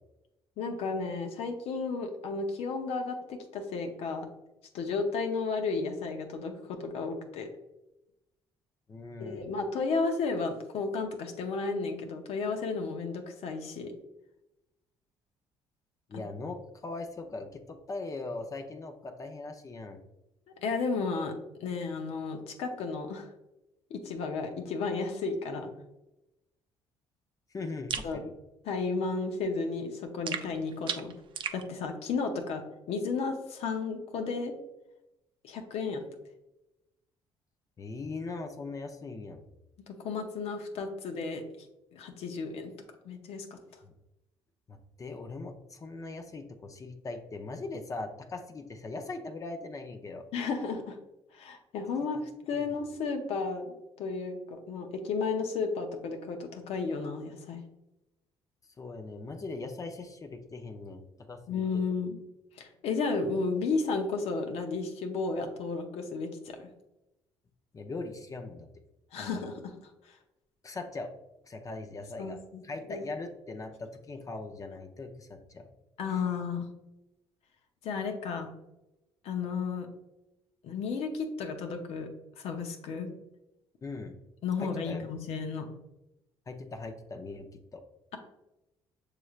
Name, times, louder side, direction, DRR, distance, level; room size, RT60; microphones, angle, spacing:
voice 1, 0.6-4.3 4.7-7.5 9.2-13.9 20.6-21.3 21.6-23.3 23.9-25.7 28.0-28.2 28.6-31.1 31.5-34.5 35.4-36.0 39.9-41.4 41.9-42.7 43.0-43.6 50.3-51.0 51.3-57.6 61.5-62.2 62.5-66.7 69.1-70.1 72.2-72.6 72.9-73.0 76.0-76.7 77.8-78.5 79.2-79.9 80.6-82.1 82.4-83.1 84.4-85.7, left 4 dB, 75° left, 4 dB, 0.7 m, -33 dB
voice 2, 8.9-9.5 16.1-20.0 27.5-28.3 37.8-39.4 43.8-43.9 44.7-50.2 52.5-52.8 58.8-61.8 67.7-68.7 69.2-69.4 70.6-71.1 71.4-72.4 72.6-75.7 83.8-84.2 84.6-85.1 86.5-87.8, left 3 dB, 30° left, 5 dB, 0.6 m, -40 dB
sound 1, 27.9-28.1 30.3-31.6, right 7 dB, 50° right, 0.4 m, -35 dB
6.7 x 3.2 x 2.4 m, 0.92 s
cardioid pair, 90°, 11 cm